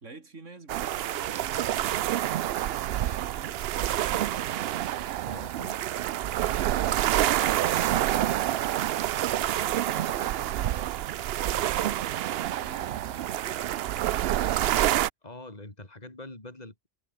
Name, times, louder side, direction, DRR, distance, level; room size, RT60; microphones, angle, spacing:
voice 1, 0.0-4.8 6.7-7.1 12.6-14.4, right 3 dB, 85° right, 3.5 m, -49 dB
sound 1, 0.7-15.1, right 12 dB, 65° right, 0.7 m, -27 dB
voice 2, 5.2-5.8 15.2-16.9, left 2 dB, 35° left, 4.0 m, -44 dB
omnidirectional pair, 1.2 m